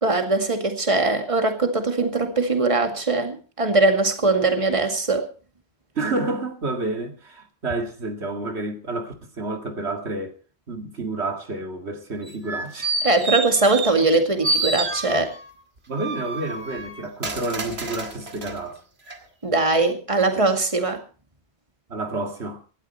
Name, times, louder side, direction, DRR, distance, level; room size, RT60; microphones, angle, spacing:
voice 1, 0.0-5.3 13.0-15.3 19.4-21.0, right 3 dB, 30° right, 2.2 m, -21 dB
voice 2, 6.0-10.4 10.7-12.9 15.9-18.8 21.9-22.6, right 2 dB, 90° right, 2.4 m, -29 dB
sound 1, 12.3-14.1 14.4-15.4 16.0-18.6 19.1-19.2, right 3 dB, 75° right, 2.5 m, -28 dB
18.5 x 12.5 x 4.3 m
omnidirectional pair, 1.1 m